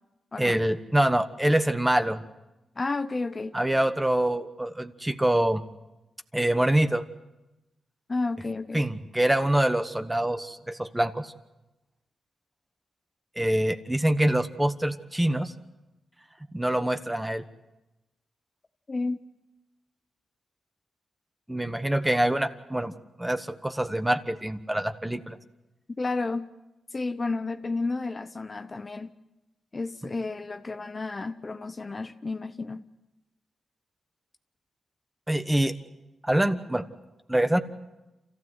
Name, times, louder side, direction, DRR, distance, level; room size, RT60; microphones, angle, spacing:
voice 1, 0.4-2.2 3.5-5.6 6.3-7.0 8.7-11.3 13.4-15.5 16.5-17.4 21.5-22.9 23.2-25.4 35.3-35.7 36.2-36.8 37.3-37.6, right 1 dB, 10° right, 9 dB, 1.1 m, -25 dB
voice 2, 2.8-3.5 8.1-8.9 18.9-19.2 26.0-26.5 26.9-29.1 29.7-32.8, left 3 dB, 30° left, 9 dB, 0.8 m, -31 dB
28.0 x 15.0 x 7.9 m, 1.0 s
cardioid pair, 100°, 0 cm